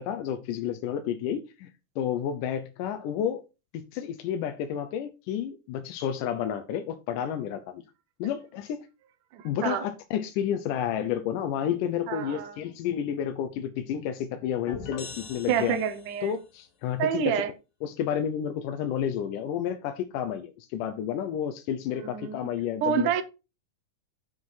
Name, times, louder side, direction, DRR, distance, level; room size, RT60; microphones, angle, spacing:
voice 1, 0.0-1.7 2.0-3.4 3.7-7.8 8.2-8.9 9.4-15.8 16.2-17.4 17.8-23.1, left 9 dB, 75° left, 2.2 m, -31 dB
voice 2, 9.3-9.9 12.1-12.6 15.5-16.3 17.0-17.5 22.0-22.4 22.8-23.2, right 8 dB, 75° right, 2.2 m, -28 dB
sound 1, 14.7-16.4, left 4 dB, 50° left, 1.4 m, -42 dB
7.8 x 5.8 x 5.5 m
omnidirectional pair, 4.1 m